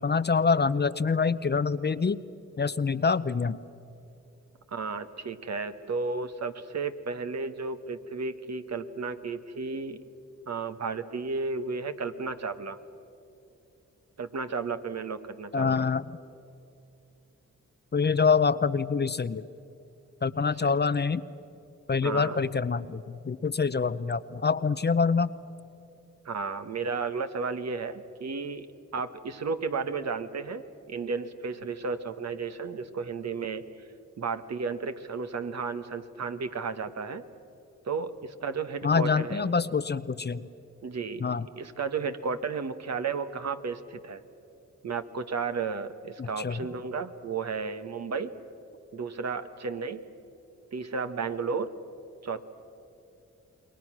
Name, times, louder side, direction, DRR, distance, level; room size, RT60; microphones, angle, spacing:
voice 1, 0.0-2.2 2.6-3.6 15.5-16.0 17.9-19.4 20.2-21.3 21.9-25.3 38.8-40.4 41.2-41.5 46.2-46.6, left 5 dB, 35° left, 14 dB, 0.8 m, -26 dB
voice 2, 4.7-10.0 10.5-12.8 14.2-15.9 20.6-20.7 22.0-22.4 26.2-28.7 28.9-33.6 34.2-37.2 37.8-39.5 40.8-41.3 41.6-44.2 44.8-48.3 48.9-50.0 50.7-51.7 52.2-52.4, right 4 dB, 60° right, 9 dB, 1.4 m, -33 dB
28.5 x 21.5 x 6.2 m, 2.8 s
supercardioid pair, 50°, 31 cm